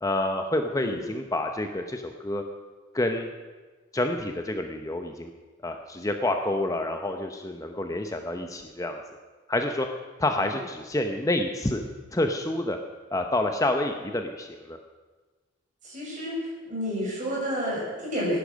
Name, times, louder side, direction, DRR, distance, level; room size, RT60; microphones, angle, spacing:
voice 1, 0.0-2.4 2.9-3.3 3.9-5.3 5.6-9.0 9.5-9.9 10.2-11.8 12.1-12.8 13.1-14.8, left 1 dB, 15° left, 5 dB, 0.7 m, -28 dB
voice 2, 15.8-18.4, equal, 40° right, -4 dB, 6.1 m, -30 dB
16.5 x 10.5 x 6.3 m, 1.3 s
head